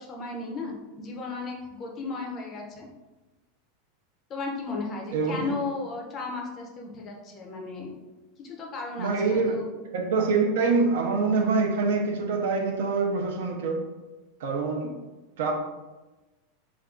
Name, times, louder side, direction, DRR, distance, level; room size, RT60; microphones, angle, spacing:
voice 1, 0.0-2.9 4.3-7.9 8.4-9.7, left 3 dB, 20° left, 0 dB, 0.4 m, -35 dB
voice 2, 5.1-5.5 9.0-9.6 9.9-13.8 14.4-15.0 15.4-15.5, right 4 dB, 75° right, 2 dB, 0.5 m, -25 dB
2.4 x 2.2 x 3.6 m, 1.1 s
supercardioid pair, 175°, 0 cm